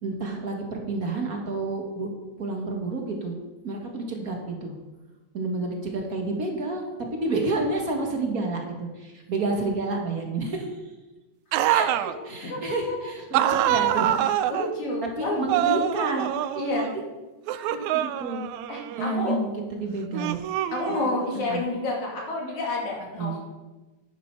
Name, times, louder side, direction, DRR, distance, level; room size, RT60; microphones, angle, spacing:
voice 1, 0.0-2.1 2.4-3.3 3.6-4.7 5.3-6.9 7.1-10.8 11.6-14.4 15.0-16.3 17.5-18.4 18.9-20.4 21.0-21.1 21.5-21.6 23.2-23.3, right 2 dB, 45° right, 1 dB, 1.3 m, -30 dB
sound 1, 11.5-12.1 13.3-14.7 15.5-17.0 17.5-19.2 20.1-21.2, right 12 dB, 80° right, 1.7 m, -25 dB
voice 2, 12.1-13.0 14.5-15.8 16.6-16.9 18.7-19.4 20.7-23.4, left 2 dB, 65° left, -2 dB, 3.9 m, -29 dB
11.0 x 10.5 x 4.6 m, 1.2 s
omnidirectional pair, 3.6 m